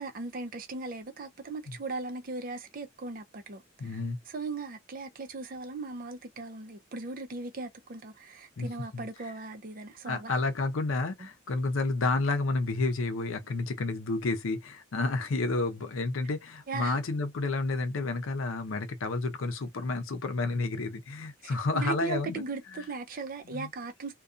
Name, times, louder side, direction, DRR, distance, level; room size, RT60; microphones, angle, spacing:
voice 1, 0.0-4.0 4.3-10.3 11.2-11.3 16.7-17.0 21.4-24.1, right 3 dB, 45° right, 0.5 m, -38 dB
voice 2, 3.8-4.2 8.6-8.7 8.9-9.0 10.1-22.4 23.5-23.7, left 3 dB, 90° left, 0.6 m, -30 dB
2.4 x 2.3 x 2.5 m
head